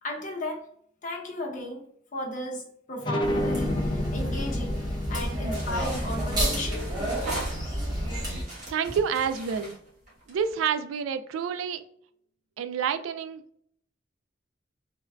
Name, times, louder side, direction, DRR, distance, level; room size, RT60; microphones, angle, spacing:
voice 1, 0.0-0.6 1.0-1.8 2.1-4.8 5.1-6.8, left 1 dB, 40° left, 0 dB, 0.8 m, -35 dB
sound 1, 3.0-8.3, left 1 dB, 25° left, 0.3 m, -32 dB
sound 2, 3.2-8.4, right 1 dB, 20° right, 1.0 m, -30 dB
sound 3, 5.5-8.0 8.4-10.6, right 2 dB, 40° right, 1.3 m, -39 dB
voice 2, 8.7-9.7 10.3-11.8 12.6-13.4, right 7 dB, 80° right, 10 dB, 0.3 m, -28 dB
3.4 x 2.2 x 2.3 m, 0.66 s
head